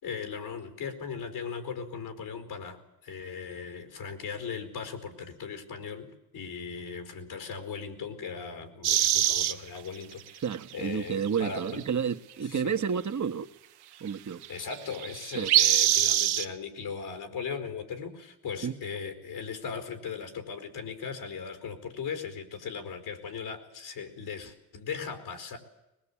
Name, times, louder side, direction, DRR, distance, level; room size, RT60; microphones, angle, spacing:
voice 1, 0.0-10.4 10.7-11.8 12.4-12.8 14.5-25.6, left 6 dB, 75° left, 9 dB, 4.6 m, -38 dB
sound 1, 8.8-9.5 10.7-10.8 11.3-11.4 11.7-11.8 14.4-14.5 14.7-16.4, right 12 dB, 85° right, 1.2 m, -23 dB
voice 2, 10.4-13.5 14.0-14.5 15.3-15.5 18.6-18.7, right 7 dB, 50° right, 7 dB, 1.7 m, -30 dB
21.5 x 21.0 x 8.6 m, 0.94 s
supercardioid pair, 55°, 38 cm